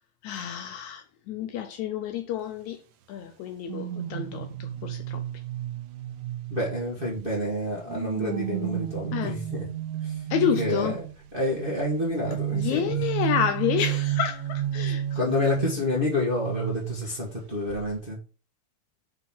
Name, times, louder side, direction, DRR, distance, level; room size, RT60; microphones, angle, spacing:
voice 1, 0.2-2.8 3.1-5.2 9.1-9.4 10.3-11.0 12.5-15.3, left 9 dB, 80° left, 1.7 m, -29 dB
sound 1, 3.7-7.3 7.9-11.1 12.2-17.4 17.7-18.0, right 11 dB, 80° right, 2.0 m, -31 dB
voice 2, 6.5-9.7 10.0-10.2 10.6-11.1 11.3-12.8 15.1-18.2, left 1 dB, 25° right, 1.3 m, -29 dB
5.6 x 4.0 x 5.7 m
omnidirectional pair, 3.7 m